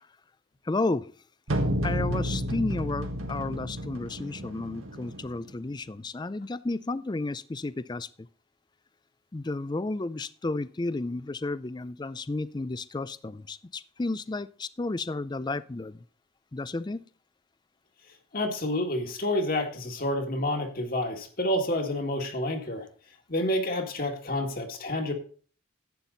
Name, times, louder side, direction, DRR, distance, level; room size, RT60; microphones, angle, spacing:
voice 1, 0.7-1.1 1.8-8.1 9.3-16.0 16.5-17.0, left 2 dB, 20° left, 17 dB, 0.4 m, -32 dB
sound 1, 1.5-5.5, equal, 85° right, 1.8 m, -31 dB
voice 2, 18.3-22.8 23.3-25.1, left 1 dB, 45° left, 3 dB, 1.9 m, -29 dB
11.5 x 8.9 x 3.9 m, 0.41 s
head